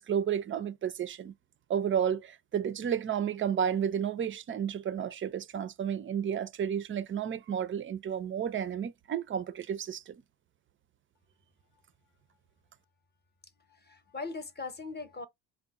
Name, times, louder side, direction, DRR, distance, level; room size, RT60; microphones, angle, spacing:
voice 1, 0.0-1.3 1.7-10.1, right 8 dB, 25° right, 0.4 m, -32 dB
voice 2, 13.4-15.3, left 4 dB, 20° left, 0.8 m, -40 dB
3.7 x 2.2 x 4.1 m
hypercardioid pair, 65°, 46 cm